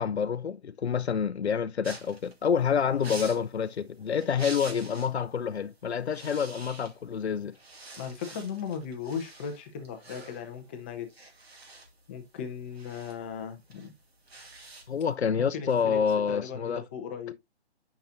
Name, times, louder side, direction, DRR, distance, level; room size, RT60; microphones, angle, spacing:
voice 1, 0.0-7.6 14.9-16.8, left 7 dB, 75° left, 0.6 m, -28 dB
sound 1, 1.8-5.2 5.5-5.7 6.0-7.2 7.5-15.1, right 3 dB, 65° right, 2.2 m, -46 dB
voice 2, 8.0-11.3 12.1-13.9 15.4-16.0 16.3-17.3, left 7 dB, 10° left, 0.6 m, -37 dB
8.8 x 5.9 x 2.5 m
figure-of-eight pair, 140°, 33 cm